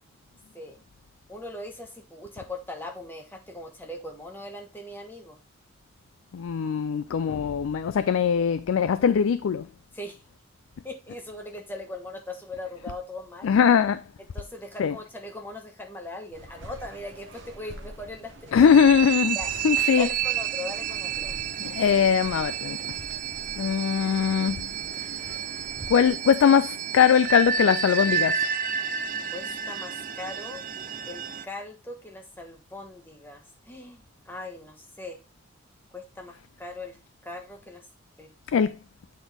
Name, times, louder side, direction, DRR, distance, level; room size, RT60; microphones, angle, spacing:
voice 1, 1.3-5.4 9.9-10.2 10.8-13.6 14.3-18.7 19.3-19.5 20.0-21.3 29.3-30.6 31.1-35.2 35.9-37.0 37.2-37.8 38.2-38.3, left 2 dB, 10° left, 1.1 m, -40 dB
voice 2, 6.3-9.7 13.4-14.0 14.8-15.0 18.5-19.4 19.6-20.1 21.6-22.8 23.6-24.7 25.0-25.5 25.9-28.5 38.5-38.8, left 7 dB, 80° left, 0.3 m, -21 dB
sound 1, 16.3-26.1, right 1 dB, 65° right, 1.1 m, -46 dB
sound 2, 18.6-31.4, right 7 dB, 40° right, 0.4 m, -30 dB
8.0 x 4.1 x 3.4 m
head